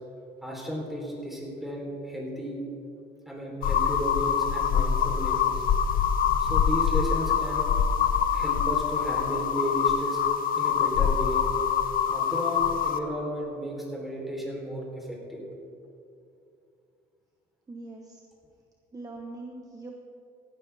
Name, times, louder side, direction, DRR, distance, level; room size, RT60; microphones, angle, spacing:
voice 1, 0.4-2.6 3.3-5.6 6.4-7.6 8.3-10.2 10.6-11.5 12.1-15.5, equal, ahead, -3 dB, 3.6 m, -33 dB
sound 1, 3.6-13.0, left 7 dB, 55° left, 0.8 m, -25 dB
voice 2, 17.7-18.2 18.9-19.9, right 2 dB, 20° right, 2 dB, 1.0 m, -42 dB
16.5 x 12.0 x 3.5 m, 2.6 s
cardioid pair, 110°, 17 cm